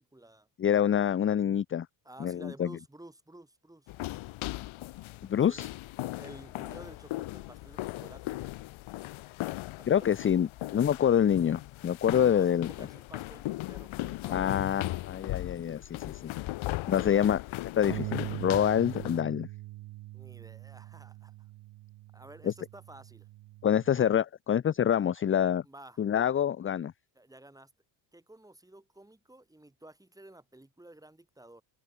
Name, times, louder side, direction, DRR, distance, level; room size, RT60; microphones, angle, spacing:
voice 1, 0.0-0.5 2.0-3.9 5.5-5.7 6.1-8.5 9.8-10.2 12.2-14.9 20.1-21.5 22.1-23.3 25.6-26.1 27.1-27.7 28.1-31.6, right 1 dB, 5° right, 5.6 m, -52 dB
voice 2, 0.6-1.9 2.2-2.7 5.3-5.7 9.9-12.7 14.3-16.3 16.9-17.4 17.8-19.5 22.5-22.6 23.6-25.6 26.0-26.9, left 9 dB, 25° left, 0.6 m, -26 dB
sound 1, 3.9-19.2, left 18 dB, 75° left, 1.2 m, -38 dB
Bass guitar, 17.9-24.1, right 18 dB, 75° right, 1.6 m, -42 dB
open air
cardioid pair, 130°, 48 cm